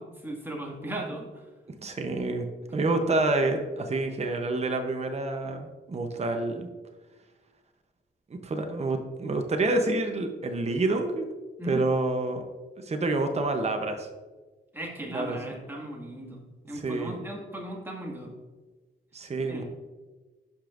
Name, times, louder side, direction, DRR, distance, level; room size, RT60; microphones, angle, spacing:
voice 1, 0.0-1.4 11.6-11.8 14.7-18.3 19.5-19.6, right 1 dB, 10° right, -2 dB, 1.9 m, -37 dB
voice 2, 1.8-2.5 2.7-6.7 8.3-11.3 11.6-12.4 12.8-14.1 15.1-15.4 16.7-17.2 19.1-19.6, right 2 dB, 35° right, 5 dB, 0.8 m, -28 dB
11.5 x 5.1 x 2.5 m, 1.3 s
cardioid pair, 85°, 20 cm